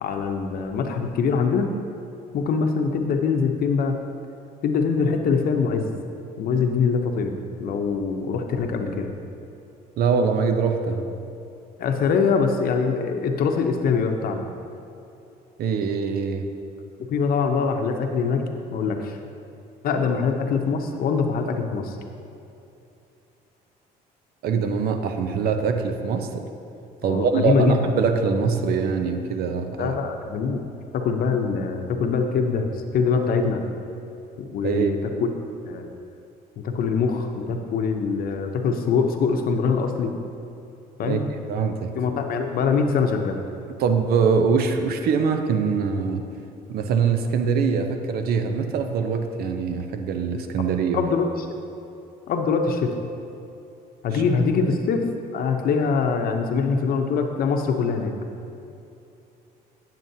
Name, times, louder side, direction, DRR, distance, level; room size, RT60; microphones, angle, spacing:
voice 1, 0.0-1.7 2.3-4.0 4.6-5.9 6.4-9.1 11.8-14.4 17.1-18.4 18.7-19.2 19.8-22.0 27.0-27.8 29.8-30.6 30.9-33.6 34.4-35.0 35.7-35.8 36.6-40.1 41.0-41.3 41.9-43.4 50.9-51.5 52.3-52.9 54.0-55.0 55.3-58.1, left 5 dB, 60° left, 4 dB, 0.7 m, -23 dB
voice 2, 10.0-11.2 15.6-16.5 24.4-26.5 27.0-30.0 34.6-35.0 41.0-41.2 41.5-41.9 43.8-46.3 46.7-51.0 54.1-54.2 54.7-54.8, right 5 dB, 65° right, 6 dB, 0.7 m, -23 dB
9.0 x 7.4 x 2.7 m, 2.8 s
cardioid pair, 110°, 17 cm